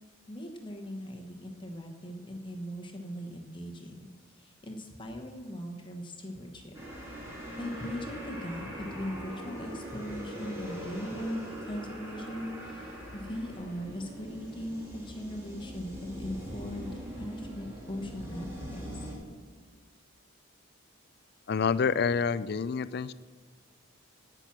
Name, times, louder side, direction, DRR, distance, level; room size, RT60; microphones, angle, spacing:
voice 1, 0.3-6.8 7.6-18.8, equal, 25° left, 2 dB, 1.1 m, -39 dB
sound 1, 6.7-19.1, equal, 15° right, 2.6 m, -42 dB
voice 2, 21.5-23.1, left 5 dB, 50° left, 16 dB, 0.3 m, -27 dB
17.0 x 6.0 x 6.1 m, 1.5 s
head